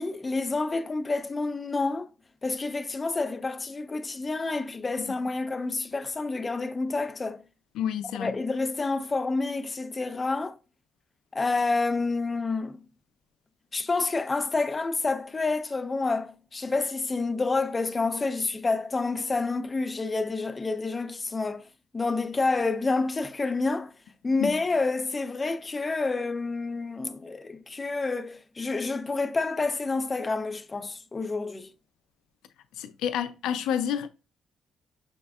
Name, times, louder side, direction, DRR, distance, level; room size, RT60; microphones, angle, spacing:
voice 1, 0.0-2.1 2.4-7.4 8.2-10.6 11.3-12.8 13.7-21.7 21.9-23.9 24.2-31.7, left 3 dB, 25° left, 0.5 m, -28 dB
voice 2, 7.8-8.4 24.4-24.5 32.8-34.1, left 9 dB, 90° left, 0.4 m, -29 dB
6.3 x 3.4 x 2.3 m
cardioid pair, 90°, 0 cm